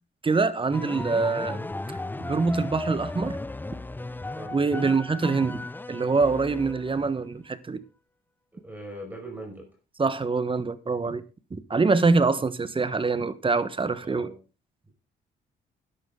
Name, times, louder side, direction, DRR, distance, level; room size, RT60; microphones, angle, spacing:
voice 1, 0.2-1.7 2.2-3.4 4.5-7.8 10.0-11.2 11.5-14.3, right 4 dB, 25° right, 1.3 m, -25 dB
sound 1, 0.7-7.2, left 2 dB, 10° left, 0.6 m, -35 dB
voice 2, 8.5-9.7 14.0-14.4, right 1 dB, 10° right, 5.5 m, -40 dB
12.0 x 11.5 x 3.9 m
cardioid pair, 90°, 20 cm